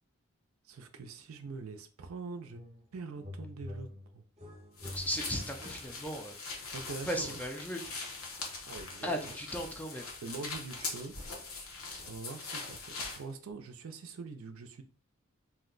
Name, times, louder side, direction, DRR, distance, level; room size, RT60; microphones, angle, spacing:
voice 1, 0.7-2.6 2.9-4.2 6.7-7.4 8.7-9.4 10.2-11.1 12.0-14.8, right 4 dB, 70° right, 0.5 m, -44 dB
sound 1, 2.5-2.9 3.2-6.3, left 1 dB, 30° right, 0.8 m, -46 dB
sound 2, 4.8-13.2, left 3 dB, 90° left, 0.9 m, -42 dB
voice 2, 4.9-6.3 7.0-7.9 9.0-10.1, equal, 5° left, 0.4 m, -36 dB
2.7 x 2.1 x 3.8 m
head